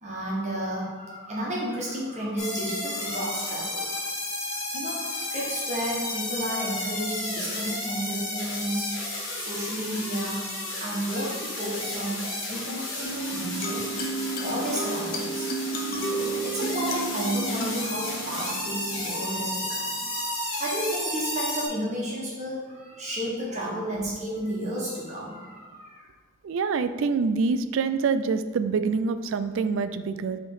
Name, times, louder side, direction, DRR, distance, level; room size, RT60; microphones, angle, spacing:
voice 1, 0.0-4.1 4.7-8.9 9.2-10.5 10.8-13.8 14.1-15.5 15.9-26.1, right 1 dB, 35° right, -5 dB, 1.4 m, -32 dB
sound 1, 2.4-21.7, left 2 dB, 60° left, 1.7 m, -33 dB
sound 2, 13.0-20.0, right 2 dB, 45° left, 0.7 m, -33 dB
voice 2, 26.4-30.4, right 4 dB, 65° right, 11 dB, 0.3 m, -26 dB
5.4 x 3.4 x 5.5 m, 1.5 s
head